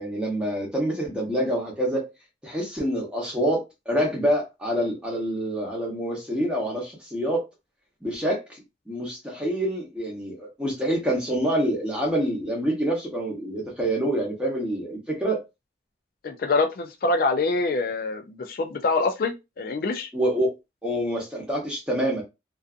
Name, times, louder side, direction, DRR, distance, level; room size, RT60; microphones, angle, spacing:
voice 1, 0.0-2.1 2.4-7.5 8.0-15.4 20.1-20.5 20.8-22.2, right 1 dB, 5° right, 0.8 m, -26 dB
voice 2, 16.2-20.1, left 3 dB, 50° left, 0.3 m, -25 dB
2.5 x 2.3 x 2.4 m
head